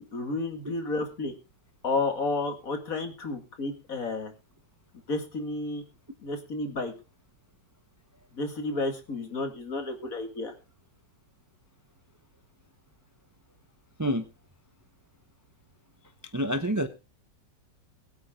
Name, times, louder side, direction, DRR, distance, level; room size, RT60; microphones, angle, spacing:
voice 1, 0.1-1.3 1.8-4.3 5.1-5.8 6.2-6.9 8.4-10.5, left 3 dB, 50° left, 6 dB, 2.5 m, -31 dB
voice 2, 16.3-16.9, equal, 30° right, 9 dB, 0.3 m, -27 dB
21.0 x 8.4 x 3.7 m, 0.30 s
omnidirectional pair, 1.9 m